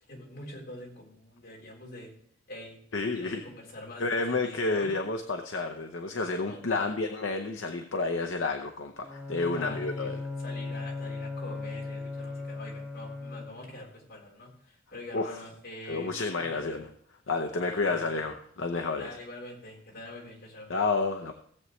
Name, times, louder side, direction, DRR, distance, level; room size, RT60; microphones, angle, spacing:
voice 1, 0.1-2.1 2.5-2.8 3.1-4.9 6.5-7.0 9.4-16.8 17.6-18.1 19.0-20.7, left 1 dB, 55° left, -2 dB, 3.6 m, -45 dB
voice 2, 2.9-3.4 4.0-10.2 15.1-15.4 15.9-16.9 17.3-19.1 20.7-21.3, left 3 dB, 70° left, 5 dB, 0.8 m, -30 dB
Bowed string instrument, 9.0-13.8, left 3 dB, 10° right, 2.2 m, -37 dB
17.0 x 7.8 x 3.2 m, 0.65 s
head